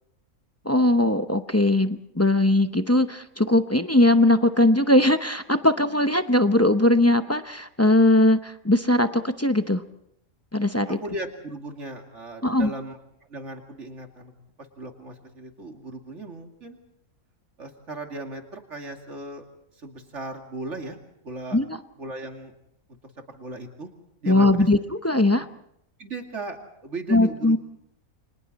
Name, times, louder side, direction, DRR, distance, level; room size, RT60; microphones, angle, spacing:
voice 1, 0.6-9.8 10.5-11.0 12.4-12.7 21.5-21.7 24.3-24.8 25.0-25.5 27.1-27.6, left 1 dB, 15° left, 8 dB, 0.5 m, -20 dB
voice 2, 10.9-13.0 13.3-14.3 14.8-16.8 17.6-19.5 19.8-21.0 21.2-21.6 22.0-22.5 23.3-23.9 24.2-24.7 26.0-27.6, right 2 dB, 55° right, 3 dB, 2.7 m, -37 dB
29.5 x 25.0 x 4.2 m, 0.74 s
omnidirectional pair, 1.5 m